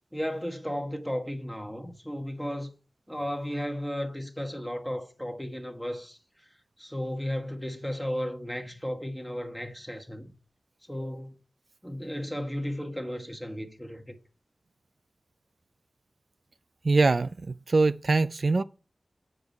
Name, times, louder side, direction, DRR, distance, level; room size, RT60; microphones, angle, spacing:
voice 1, 0.1-2.7 3.1-6.2 6.8-10.3 10.9-11.3 11.8-14.1, equal, 5° left, 1.4 m, -34 dB
voice 2, 16.8-18.6, right 3 dB, 60° right, 0.3 m, -23 dB
8.8 x 4.8 x 5.3 m
wide cardioid pair, 65°, 0 cm